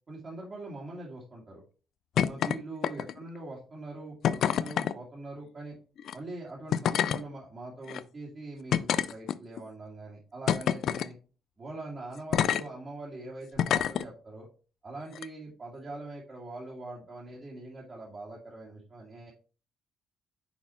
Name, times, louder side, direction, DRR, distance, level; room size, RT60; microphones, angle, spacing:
voice 1, 0.1-1.6 2.1-5.7 6.1-11.2 11.6-14.5 14.8-19.3, right 2 dB, 35° right, -4 dB, 2.1 m, -43 dB
sound 1, 2.2-2.6 2.8-3.3 4.2-4.9 6.0-6.1 6.7-7.2 7.9-8.0 8.7-9.6 10.5-11.1 12.3-12.6 13.6-14.0 15.1-15.3, left 9 dB, 65° left, 0.3 m, -27 dB
6.0 x 4.1 x 4.3 m, 0.37 s
cardioid pair, 85°, 0 cm